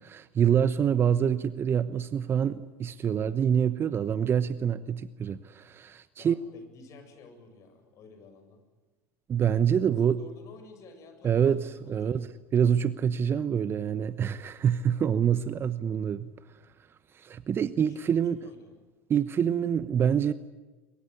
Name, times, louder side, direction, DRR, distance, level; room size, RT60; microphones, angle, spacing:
voice 1, 0.0-6.4 9.3-10.2 11.2-11.6 11.9-12.3 12.5-16.3 17.1-18.4 19.1-20.3, right 8 dB, 30° right, 1.0 m, -26 dB
voice 2, 6.2-8.6 10.1-11.5 11.8-12.2 17.8-18.7, left 3 dB, 45° left, 7.8 m, -51 dB
24.0 x 23.0 x 9.7 m
hypercardioid pair, 90°, 7 cm